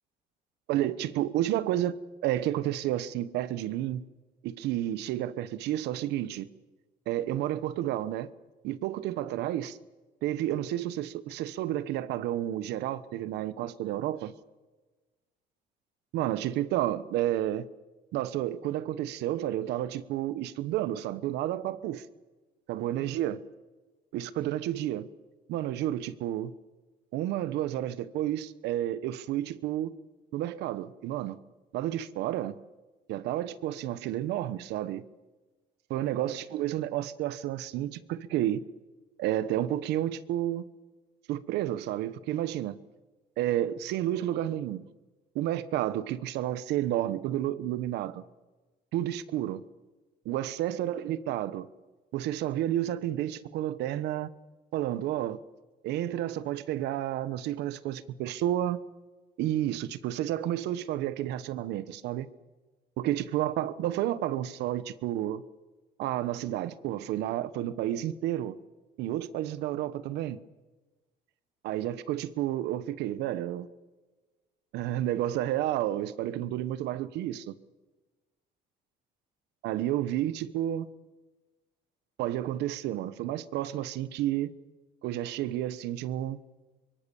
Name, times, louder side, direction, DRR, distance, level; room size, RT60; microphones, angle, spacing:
voice 1, 0.7-2.0 2.2-4.0 4.4-6.5 7.1-8.3 8.6-9.8 10.2-14.3 16.1-17.7 18.1-22.0 22.7-23.4 24.1-25.1 25.5-26.5 27.1-29.9 30.3-31.4 31.7-32.6 33.1-35.0 35.9-38.6 39.2-40.7 41.3-42.8 43.4-44.8 45.3-48.2 48.9-49.6 50.2-51.7 52.1-54.3 54.7-55.4 55.8-58.8 59.4-62.3 63.0-65.4 66.0-68.6 69.0-70.4 71.6-73.7 74.7-77.6 79.6-80.9 82.2-84.5 85.0-86.4, right 13 dB, 85° right, 1.2 m, -31 dB
24.5 x 23.0 x 7.1 m
cardioid pair, 110°, 17 cm